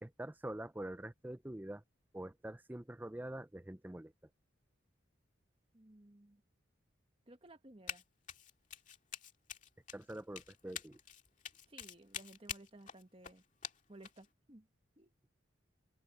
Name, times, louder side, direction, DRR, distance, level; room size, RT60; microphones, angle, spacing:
voice 1, 0.0-1.8 2.1-4.1 9.9-11.0, right 1 dB, 10° right, 0.5 m, -45 dB
voice 2, 5.7-6.4 7.3-8.0 11.7-13.4 13.9-14.7 15.0-15.1, right 1 dB, 30° right, 1.4 m, -57 dB
Run, 7.9-8.0 8.3-14.3, left 8 dB, 40° left, 2.2 m, -46 dB
open air
head